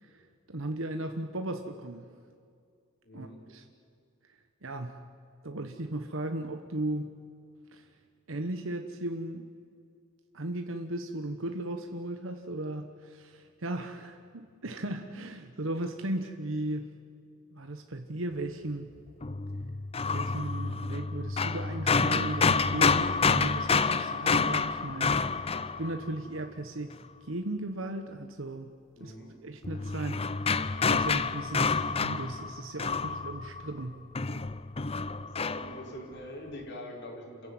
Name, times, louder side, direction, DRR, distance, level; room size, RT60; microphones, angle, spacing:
voice 1, 0.0-2.1 3.1-3.7 4.6-5.0 5.4-7.1 7.7-7.9 8.3-9.5 10.3-16.9 17.5-18.9 20.1-25.5 25.8-27.0 27.2-28.7 29.0-29.1 29.4-34.0, right 1 dB, 70° right, 6 dB, 1.2 m, -36 dB
voice 2, 3.0-3.4 29.0-29.3 35.1-37.5, equal, 60° left, 0 dB, 5.0 m, -44 dB
sound 1, 19.2-26.4 29.6-33.8 34.1-35.9, left 4 dB, 30° left, 0.6 m, -28 dB
28.0 x 15.5 x 9.5 m, 2.3 s
head